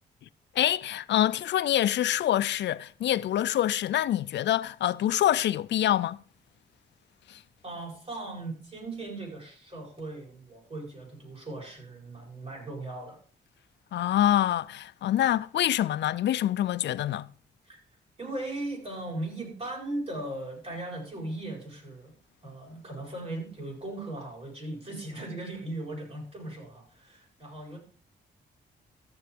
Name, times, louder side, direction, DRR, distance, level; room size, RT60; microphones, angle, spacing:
voice 1, 0.6-6.2 7.3-7.4 13.9-17.3, left 12 dB, 80° left, 0.6 m, -26 dB
voice 2, 7.6-13.2 17.7-17.8 18.2-22.1 22.4-27.8, right 2 dB, 35° right, 7.7 m, -38 dB
13.5 x 7.6 x 5.2 m
cardioid pair, 95°, 18 cm